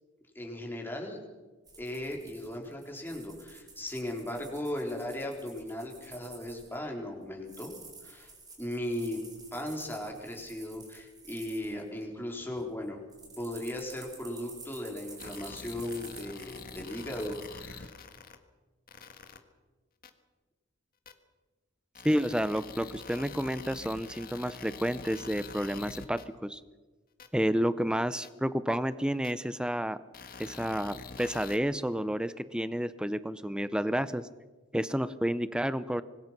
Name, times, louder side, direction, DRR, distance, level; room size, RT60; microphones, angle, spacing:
voice 1, 0.3-1.2 1.8-7.7 8.0-8.3 8.6-9.2 9.5-13.0 13.4-17.9, left 1 dB, 10° left, 1 dB, 4.4 m, -37 dB
sound 1, 1.7-6.8 7.4-12.0 12.6-17.5, right 3 dB, 20° right, 4.2 m, -51 dB
sound 2, 15.2-18.4 18.9-19.4 20.0-20.1 21.1-21.2 21.9-26.2 27.2-27.3 28.2-28.3 29.2-29.3 30.1-31.6, left 5 dB, 45° left, 1.9 m, -45 dB
voice 2, 22.0-26.6 27.3-30.0 30.4-34.3 34.7-36.0, equal, 5° right, 14 dB, 0.7 m, -30 dB
25.5 x 21.5 x 6.0 m, 1.3 s
head